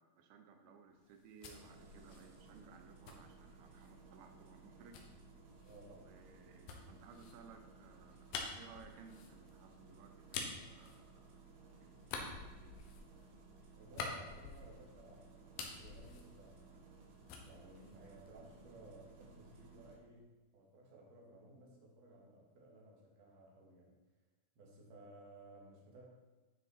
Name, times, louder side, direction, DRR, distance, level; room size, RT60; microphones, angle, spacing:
voice 1, 0.0-5.0 6.0-11.4 11.8-12.8, right 5 dB, 85° right, 5 dB, 2.8 m, -60 dB
sound 1, 1.0-4.0 4.9-11.6 12.0-15.0 15.3-17.0 17.3-18.6, left 4 dB, 75° left, 2.7 m, -49 dB
Engine starting, 1.4-20.0, right 4 dB, 70° right, 1.4 m, -60 dB
voice 2, 5.6-6.1 13.7-16.9 17.4-20.3 20.5-23.9 24.6-26.1, right 2 dB, 50° right, -2 dB, 2.5 m, -58 dB
10.0 x 6.3 x 4.2 m, 1.2 s
omnidirectional pair, 4.4 m